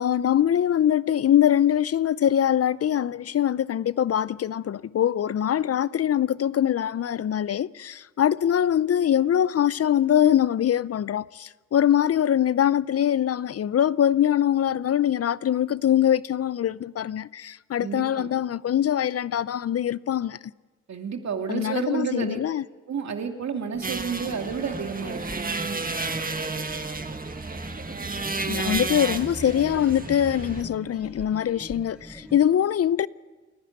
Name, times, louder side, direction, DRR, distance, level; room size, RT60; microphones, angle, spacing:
voice 1, 0.0-20.4 21.5-22.7 28.5-33.1, left 10 dB, 55° left, 0.6 m, -23 dB
voice 2, 17.8-18.3 20.9-22.4 22.9-25.4, right 6 dB, 65° right, 2.5 m, -30 dB
sound 1, 23.7-32.4, right 1 dB, 5° right, 1.9 m, -43 dB
sound 2, 23.8-30.6, right 3 dB, 30° right, 1.8 m, -31 dB
29.0 x 11.0 x 9.4 m
supercardioid pair, 50°, 30 cm